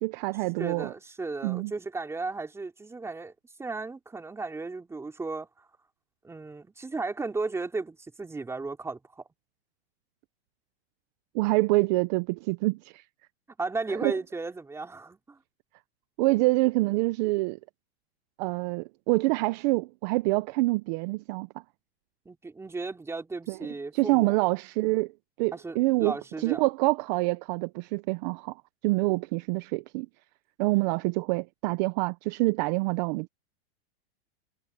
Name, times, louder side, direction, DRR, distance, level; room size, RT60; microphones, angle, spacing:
voice 1, 0.0-0.9 1.4-1.7 11.3-13.0 14.0-14.2 16.2-17.6 18.4-21.5 23.5-23.6 23.9-25.1 25.4-30.1 30.6-33.3, right 22 dB, 40° right, 0.7 m, -26 dB
voice 2, 0.6-3.3 3.6-5.7 6.2-9.2 13.6-15.4 22.3-24.4 25.5-26.6, right 3 dB, 10° right, 3.6 m, -35 dB
supercardioid pair, 150°, 33 cm